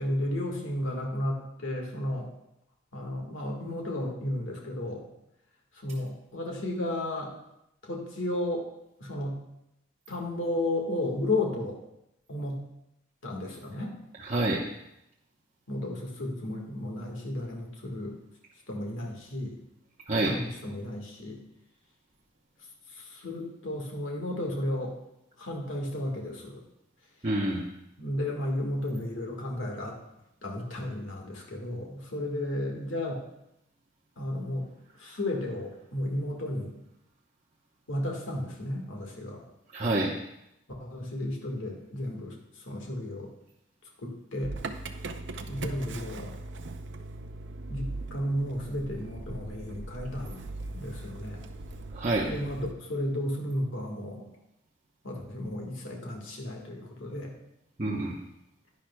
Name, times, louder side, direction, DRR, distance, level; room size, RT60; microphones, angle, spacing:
voice 1, 0.0-2.3 2.9-5.1 5.7-7.3 7.8-8.7 9.0-9.4 10.1-11.8 12.3-12.7 13.2-13.9 15.7-18.2 18.7-19.6 20.2-21.4 22.9-24.9 25.4-26.6 28.0-30.0 30.4-33.2 34.2-34.7 35.0-36.7 37.9-39.4 40.8-43.3 44.0-44.6 45.5-46.3 47.7-50.4 50.7-51.4 52.3-54.3 55.0-57.3, left 1 dB, 85° left, 0 dB, 1.7 m, -33 dB
voice 2, 14.2-14.6 20.1-20.3 27.2-27.6 39.7-40.1 51.9-52.3 57.8-58.2, right 2 dB, 35° right, -4 dB, 0.9 m, -27 dB
Motor vehicle (road) / Engine starting, 44.4-52.7, right 2 dB, 65° right, 0.6 m, -40 dB
11.0 x 10.5 x 2.3 m, 0.83 s
head